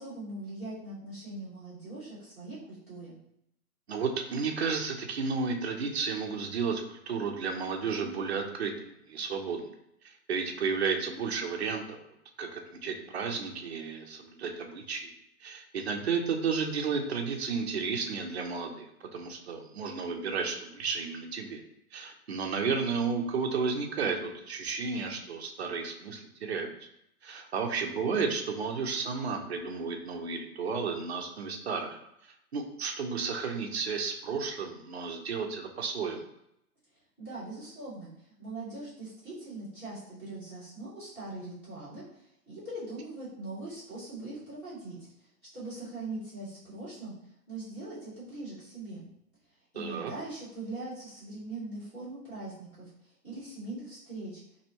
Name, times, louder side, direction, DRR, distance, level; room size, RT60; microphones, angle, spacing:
voice 1, 0.0-3.1 37.2-38.1 38.4-45.3 45.5-47.1 47.5-49.0 49.7-54.4, right 2 dB, 5° left, -15 dB, 1.1 m, -41 dB
voice 2, 3.9-9.7 10.0-12.0 12.4-15.1 15.4-18.9 19.1-21.6 21.9-26.7 27.2-32.0 32.5-36.2 49.8-50.1, right 5 dB, 45° right, 3 dB, 0.5 m, -32 dB
4.2 x 2.7 x 2.8 m, 0.80 s
hypercardioid pair, 170°, 46 cm